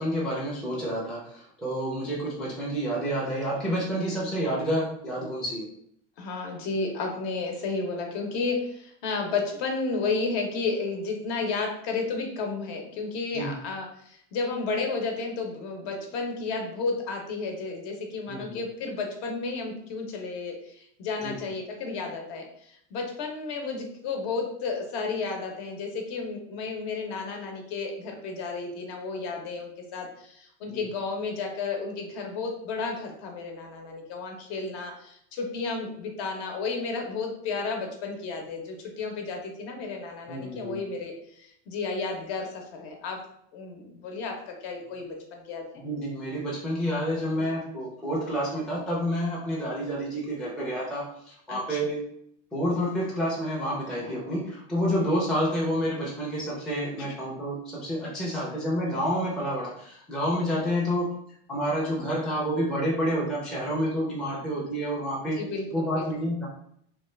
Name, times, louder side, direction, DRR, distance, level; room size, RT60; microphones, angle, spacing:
voice 1, 0.0-5.7 13.3-13.5 18.3-18.6 21.2-21.4 30.7-30.9 40.3-40.8 45.8-52.1 52.5-61.1 61.5-65.4 65.7-66.5, equal, ahead, -6 dB, 0.4 m, -29 dB
voice 2, 6.2-43.2 43.5-45.8 51.5-51.9 57.0-57.1 58.3-58.5 65.2-66.1, left 4 dB, 60° left, 2 dB, 0.8 m, -32 dB
3.1 x 2.3 x 3.1 m, 0.70 s
supercardioid pair, 150°, 35 cm